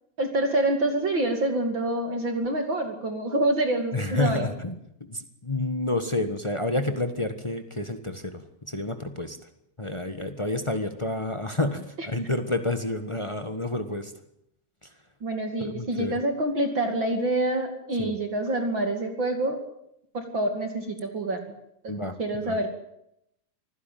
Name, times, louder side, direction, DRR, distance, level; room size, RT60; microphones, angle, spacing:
voice 1, 0.2-4.5 12.0-12.1 15.2-19.6 20.1-21.4 21.8-21.9 22.2-22.7, right 1 dB, 40° right, 5 dB, 3.0 m, -26 dB
voice 2, 3.9-4.7 5.0-8.4 8.7-9.4 9.8-14.1 15.6-16.2 18.0-18.1 21.9-22.1 22.4-22.6, left 2 dB, 50° left, 8 dB, 0.3 m, -29 dB
25.5 x 16.0 x 9.3 m, 0.78 s
omnidirectional pair, 3.4 m